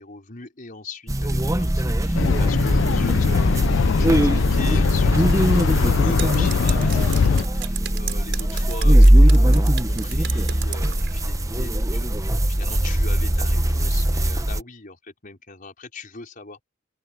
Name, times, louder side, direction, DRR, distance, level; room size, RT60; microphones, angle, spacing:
voice 1, 0.0-16.6, left 3 dB, 50° left, 4.9 m, -40 dB
sound 1, 1.1-14.6, right 1 dB, 20° right, 0.9 m, -20 dB
sound 2, 2.2-7.4, left 5 dB, 90° left, 0.4 m, -21 dB
Drip, 6.0-11.2, right 10 dB, 65° right, 5.2 m, -37 dB
open air
head